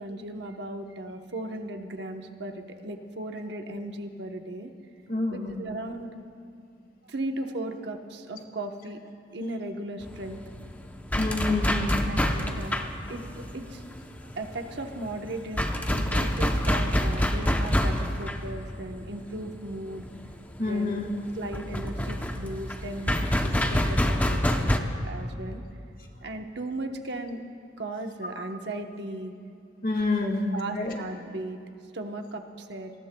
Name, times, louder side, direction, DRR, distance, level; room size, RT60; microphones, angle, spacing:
voice 1, 0.0-4.7 5.3-6.2 7.1-9.0 9.3-10.4 12.1-13.8 14.2-20.1 20.6-21.0 21.3-25.6 26.2-27.4 27.8-29.3 30.2-31.6 31.9-32.9, right 1 dB, 65° right, 4 dB, 1.1 m, -37 dB
voice 2, 5.1-5.5 11.2-12.0 20.6-21.1 29.8-31.0, left 2 dB, 50° left, 2 dB, 1.8 m, -27 dB
sound 1, 10.0-24.8, equal, 10° left, 0.7 m, -27 dB
28.0 x 19.5 x 2.3 m, 2.4 s
head